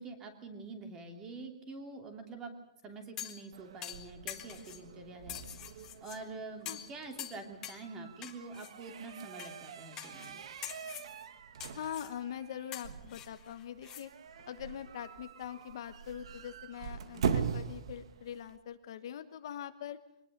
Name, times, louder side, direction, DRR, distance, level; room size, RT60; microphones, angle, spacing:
voice 1, 0.0-2.5 2.8-5.4 6.0-10.4, right 3 dB, 15° right, 6 dB, 2.9 m, -46 dB
sound 1, 3.2-3.5 3.8-4.8 5.3-6.2 6.7-6.9 7.2-7.8 8.2-8.7 9.4-9.5 10.0-10.3 10.6-11.1 11.6-12.1 12.7-14.0 14.4-14.5, left 11 dB, 15° left, 1.6 m, -45 dB
sound 2, 3.5-18.6, right 7 dB, 55° right, 2.0 m, -42 dB
voice 2, 11.7-14.1 14.5-20.0, left 10 dB, 40° left, 10 dB, 1.3 m, -43 dB
24.0 x 19.5 x 6.7 m, 0.89 s
hypercardioid pair, 175°, 4 cm